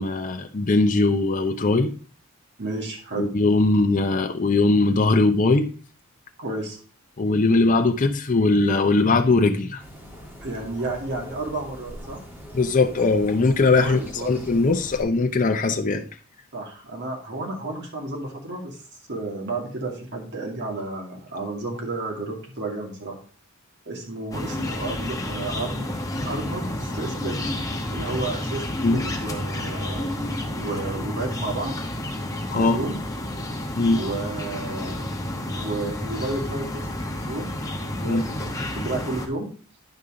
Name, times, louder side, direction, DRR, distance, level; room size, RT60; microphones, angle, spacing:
voice 1, 0.0-1.9 3.2-5.7 7.2-9.8 12.5-16.1 28.8-29.0 32.5-32.8 33.8-34.0 38.0-38.2, left 3 dB, 35° left, 0.6 m, -20 dB
voice 2, 2.6-3.3 6.4-6.8 10.4-12.2 13.8-14.3 16.5-23.2 23.9-25.9 26.2-28.6 28.9-31.8 32.5-33.0 33.9-35.1 35.5-37.5 37.9-39.5, right 2 dB, 55° right, 2.2 m, -32 dB
sound 1, 9.8-15.0, equal, 10° right, 1.9 m, -42 dB
sound 2, 24.3-39.3, left 1 dB, 15° left, 1.1 m, -30 dB
9.9 x 5.4 x 3.7 m
head